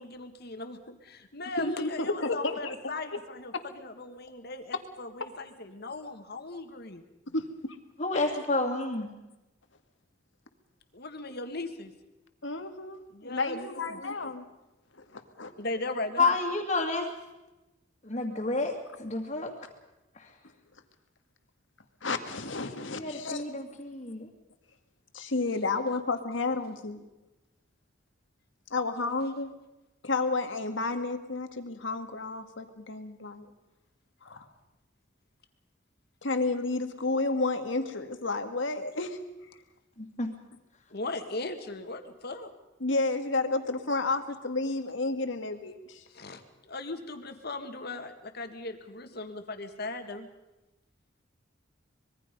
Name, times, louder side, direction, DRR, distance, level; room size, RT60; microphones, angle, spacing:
voice 1, 0.0-7.0 10.9-11.9 13.1-14.0 15.6-16.3 40.9-42.5 46.1-50.3, left 2 dB, 60° left, 7 dB, 2.0 m, -38 dB
voice 2, 1.6-2.8 3.5-3.6 7.3-7.4 8.1-8.3 11.3-11.4 12.4-14.4 15.1-15.5 22.0-23.4 25.1-27.0 28.7-29.5 30.0-33.5 34.2-34.5 36.2-39.2 42.8-46.0, left 3 dB, 80° left, 7 dB, 1.9 m, -31 dB
voice 3, 8.0-9.1 16.2-17.1 18.0-19.5 20.2-20.3 22.9-24.3 40.0-40.3, left 3 dB, 40° left, -4 dB, 2.4 m, -30 dB
25.5 x 21.5 x 5.4 m, 1.0 s
head